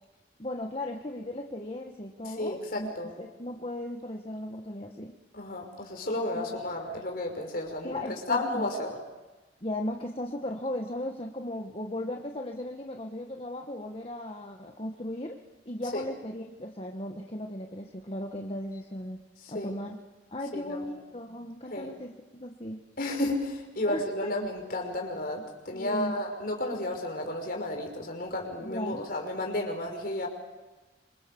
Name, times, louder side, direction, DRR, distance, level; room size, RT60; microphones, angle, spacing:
voice 1, 0.4-2.9 3.2-5.1 6.3-6.5 7.8-8.7 9.6-15.4 15.6-19.2 19.5-20.0 20.3-22.8 23.9-24.3 25.7-26.2 28.6-29.0, left 1 dB, 30° left, 3 dB, 1.6 m, -36 dB
voice 2, 2.2-3.2 5.3-9.0 15.8-16.0 19.4-19.7 20.5-20.8 21.7-21.9 23.0-30.3, left 1 dB, 50° left, 3 dB, 5.8 m, -32 dB
26.5 x 26.5 x 7.2 m, 1.1 s
head